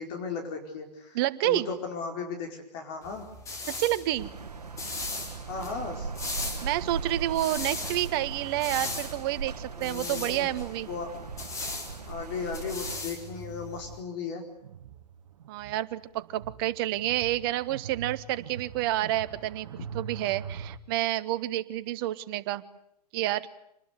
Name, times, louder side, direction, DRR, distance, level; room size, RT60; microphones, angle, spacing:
voice 1, 0.0-1.2 1.4-3.3 5.5-6.1 9.8-10.5 10.9-11.1 12.1-14.4, left 5 dB, 35° left, 2 dB, 4.6 m, -36 dB
voice 2, 1.1-1.7 3.7-4.3 6.6-10.9 15.5-19.7 19.9-22.6 23.1-23.5, right 15 dB, 35° right, 13 dB, 1.5 m, -29 dB
sound 1, 3.0-14.0, left 2 dB, 15° left, 4.1 m, -39 dB
sound 2, 4.2-13.0, right 5 dB, 70° right, 1.6 m, -39 dB
sound 3, 14.6-20.8, right 7 dB, 50° right, 1.6 m, -43 dB
27.5 x 20.5 x 9.6 m, 0.77 s
figure-of-eight pair, 120°, 21 cm